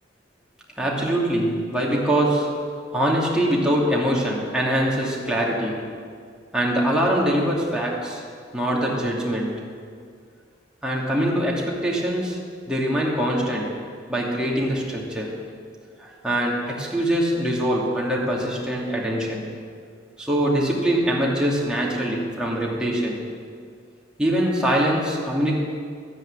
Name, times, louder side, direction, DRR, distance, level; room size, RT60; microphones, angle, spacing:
voice 1, 0.8-2.5 2.9-5.8 6.5-8.2 8.5-9.6 10.8-12.4 12.7-13.7 14.1-15.3 16.0-19.5 20.2-23.2 24.2-25.6, right 1 dB, 5° right, -5 dB, 2.8 m, -23 dB
14.0 x 10.5 x 8.6 m, 2.1 s
head